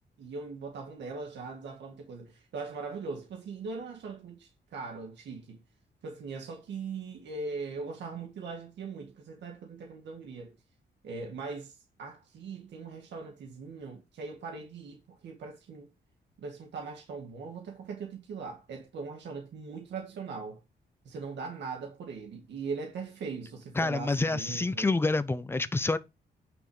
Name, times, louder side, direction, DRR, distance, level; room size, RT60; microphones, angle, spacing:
voice 1, 0.2-5.6 6.0-10.5 11.0-15.9 16.4-20.6 21.1-24.9, right 4 dB, 80° right, 1.9 m, -40 dB
voice 2, 23.8-26.0, left 3 dB, 15° left, 0.6 m, -27 dB
9.3 x 6.1 x 4.8 m
wide cardioid pair, 180°, 18 cm